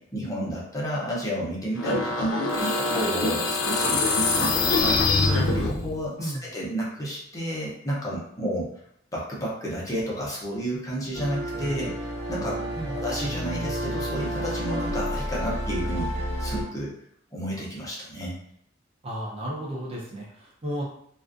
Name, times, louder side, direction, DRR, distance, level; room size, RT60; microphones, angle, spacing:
voice 1, 0.0-5.2 5.5-8.7 9.1-12.6 12.9-16.9 17.3-18.4, equal, 20° left, -5 dB, 0.6 m, -31 dB
sound 1, 1.8-6.0, left 3 dB, 85° left, 0.4 m, -24 dB
sound 2, 11.1-16.6, equal, 70° right, 0.9 m, -30 dB
voice 2, 19.0-20.8, right 1 dB, 30° right, -3 dB, 0.5 m, -33 dB
2.4 x 2.3 x 2.4 m, 0.70 s
head